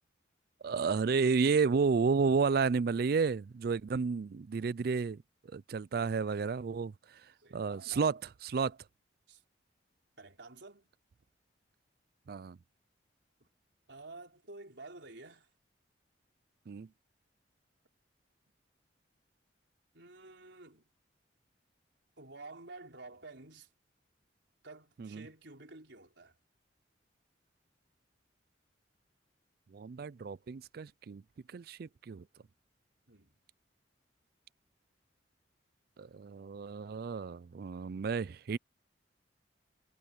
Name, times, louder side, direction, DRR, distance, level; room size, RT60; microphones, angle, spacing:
voice 1, 0.6-5.2 5.5-6.9 7.5-8.8 12.3-12.6 16.7-16.9 25.0-25.3 29.7-31.2 31.5-32.2 36.0-38.6, right 5 dB, 55° right, 0.4 m, -31 dB
voice 2, 7.4-8.2 9.3-9.4 10.2-10.9 13.4-13.5 13.9-15.5 19.9-20.9 22.2-23.7 24.6-26.3 33.1-33.4, right 3 dB, 70° right, 4.3 m, -51 dB
head